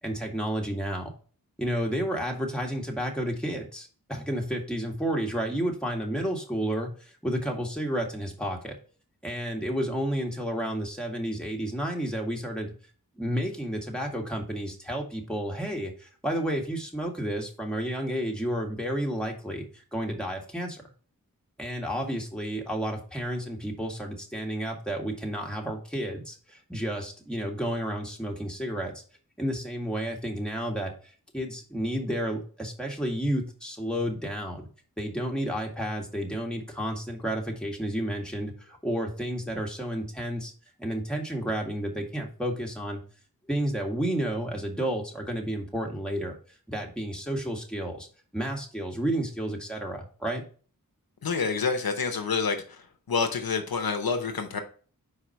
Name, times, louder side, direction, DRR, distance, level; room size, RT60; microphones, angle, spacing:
voice 1, 0.0-1.1 1.6-8.8 9.2-12.7 13.2-20.8 21.6-29.0 29.4-30.9 31.3-34.7 35.0-40.5 40.8-43.0 43.5-46.4 46.7-48.1 48.3-50.4, equal, ahead, 0 dB, 2.0 m, -31 dB
voice 2, 51.2-52.8 53.1-54.6, left 5 dB, 85° left, 5 dB, 0.9 m, -28 dB
4.8 x 4.8 x 4.5 m, 0.40 s
cardioid pair, 40°, 35 cm